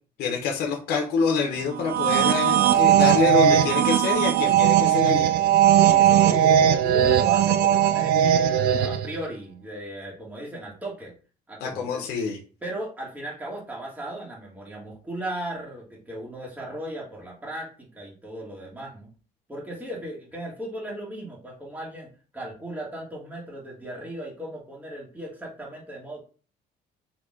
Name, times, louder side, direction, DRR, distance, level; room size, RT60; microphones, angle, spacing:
voice 1, 0.2-5.3 11.6-12.4, left 5 dB, 70° left, 0 dB, 0.9 m, -26 dB
sound 1, 1.8-9.2, right 10 dB, 70° right, 0.4 m, -19 dB
voice 2, 5.8-11.1 11.5-12.0 12.6-19.1 19.5-22.1 22.3-26.2, right 1 dB, 10° right, -4 dB, 1.6 m, -36 dB
4.1 x 2.8 x 3.7 m, 0.37 s
cardioid pair, 110°, 17 cm